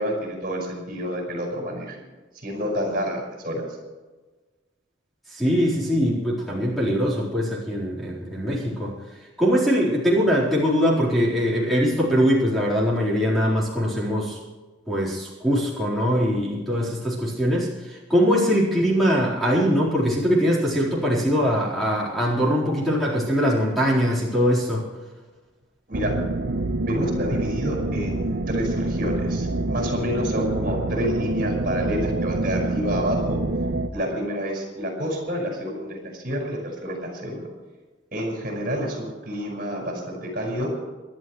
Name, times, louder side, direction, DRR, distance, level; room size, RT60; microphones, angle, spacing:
voice 1, 0.0-2.0 2.3-3.7 25.9-26.1 26.9-33.4 33.9-37.5 38.1-40.7, equal, 45° right, 1 dB, 5.4 m, -28 dB
voice 2, 5.3-8.9 9.4-14.4 14.9-24.9, equal, ahead, -7 dB, 4.2 m, -22 dB
sound 1, 25.9-33.9, right 2 dB, 65° right, 1.1 m, -26 dB
28.0 x 12.0 x 3.2 m, 1.3 s
head